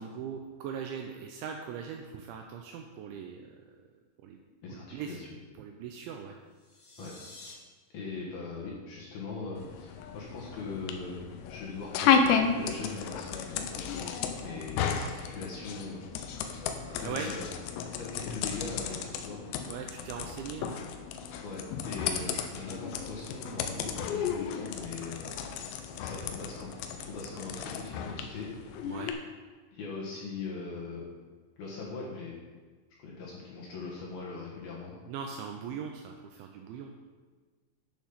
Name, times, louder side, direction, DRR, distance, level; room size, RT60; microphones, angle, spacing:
voice 1, 0.0-3.6 4.2-4.4 4.7-5.2 5.5-6.4 7.0-7.1 17.0-17.3 19.7-20.8 28.8-29.1 35.1-36.9, right 7 dB, 80° right, 3 dB, 2.7 m, -40 dB
voice 2, 4.6-5.3 7.0-7.1 7.9-16.1 16.9-17.5 17.9-19.4 21.4-25.5 26.0-26.7 27.0-28.6 29.7-31.0 31.6-32.3 33.0-34.9, left 4 dB, 60° left, -4 dB, 2.9 m, -40 dB
sound 1, 6.5-7.5, left 2 dB, 45° left, 1.4 m, -50 dB
sound 2, 9.6-29.1, left 7 dB, 85° left, 2.5 m, -33 dB
10.5 x 7.4 x 5.7 m, 1.4 s
omnidirectional pair, 5.9 m